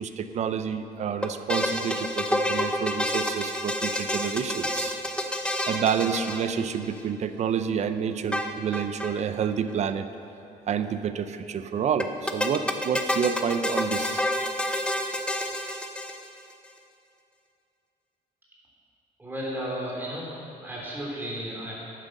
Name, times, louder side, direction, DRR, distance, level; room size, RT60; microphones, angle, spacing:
voice 1, 0.0-5.0 5.7-10.0 10.7-14.2, right 7 dB, 45° right, 10 dB, 0.6 m, -29 dB
sound 1, 1.2-7.0 8.3-9.2 9.4-9.5 9.7-9.8 12.0-16.5, left 1 dB, 5° left, 0.7 m, -29 dB
voice 2, 19.2-21.7, equal, 15° right, -5 dB, 3.5 m, -34 dB
11.0 x 9.3 x 6.6 m, 2.7 s
cardioid pair, 140°, 16 cm